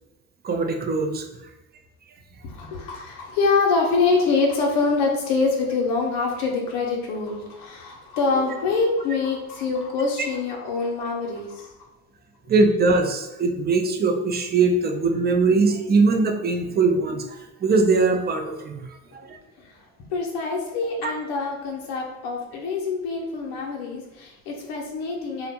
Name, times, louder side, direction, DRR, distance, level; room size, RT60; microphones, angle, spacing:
voice 1, 0.4-1.3 12.5-18.9 19.1-19.4 21.0-21.1, right 3 dB, 25° right, 4 dB, 0.4 m, -21 dB
voice 2, 2.4-11.9 19.6-19.7 20.1-25.5, left 4 dB, 65° left, 0 dB, 0.7 m, -25 dB
2.4 x 2.1 x 2.8 m, 1.0 s
hypercardioid pair, 60°, 42 cm